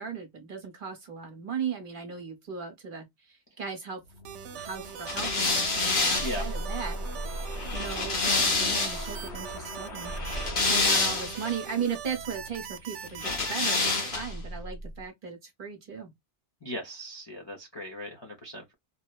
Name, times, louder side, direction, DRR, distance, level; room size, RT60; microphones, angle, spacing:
voice 1, 0.0-4.0 4.6-7.0 7.7-10.1 10.7-16.1, right 6 dB, 50° right, 0.9 m, -37 dB
sound 1, 4.0-12.4, left 1 dB, 70° left, 1.3 m, -43 dB
sound 2, 4.2-14.1, right 9 dB, 80° right, 0.9 m, -41 dB
sound 3, 5.1-9.2 10.1-11.5 13.2-14.4, left 3 dB, 50° left, 1.0 m, -27 dB
voice 2, 16.6-18.7, equal, 35° left, 0.5 m, -38 dB
2.8 x 2.0 x 2.3 m
omnidirectional pair, 1.2 m